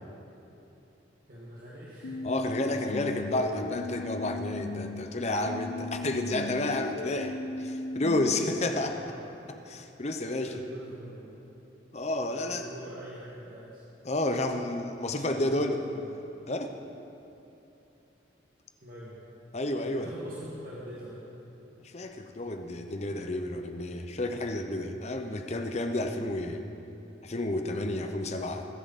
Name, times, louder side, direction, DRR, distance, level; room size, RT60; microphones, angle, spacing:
voice 1, 1.3-2.2 8.9-9.3 10.4-11.5 12.3-13.8 14.1-14.2 15.1-16.1 18.8-19.2 19.8-21.2, right 1 dB, 50° right, -7 dB, 2.0 m, -44 dB
sound 1, 2.0-5.0 5.5-8.5, left 3 dB, 85° left, 0.6 m, -37 dB
voice 2, 2.2-9.0 9.7-10.6 11.9-12.7 14.0-15.8 16.5-16.7 19.5-20.1 21.8-26.6 27.2-28.7, left 1 dB, 35° left, 6 dB, 0.8 m, -31 dB
21.0 x 9.7 x 4.2 m, 3.0 s
head